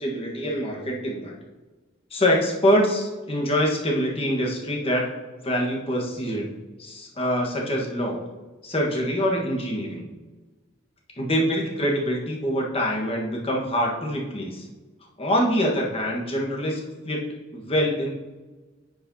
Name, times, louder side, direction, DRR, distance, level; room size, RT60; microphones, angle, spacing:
voice 1, 0.0-1.3 2.1-5.1 5.4-6.5 6.8-8.2 8.6-10.1 11.2-14.6 15.2-17.3 17.5-18.1, equal, 30° left, -1 dB, 1.3 m, -25 dB
10.0 x 5.3 x 2.8 m, 1.2 s
head